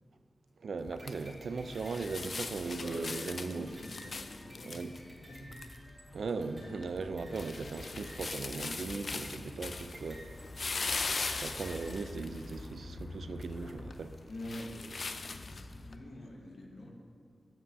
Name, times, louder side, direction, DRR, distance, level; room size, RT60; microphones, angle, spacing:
voice 1, 0.6-3.7 4.6-4.9 6.1-10.4 11.3-14.2, right 4 dB, 85° right, 10 dB, 0.4 m, -38 dB
sound 1, 0.8-16.0, left 3 dB, 55° left, 0.4 m, -41 dB
sound 2, 1.0-12.0, equal, 30° right, 2.3 m, -55 dB
voice 2, 2.8-5.6 14.3-16.9, left 1 dB, 85° left, -1 dB, 1.3 m, -46 dB
7.5 x 5.6 x 6.5 m, 2.3 s
wide cardioid pair, 120°, 0 cm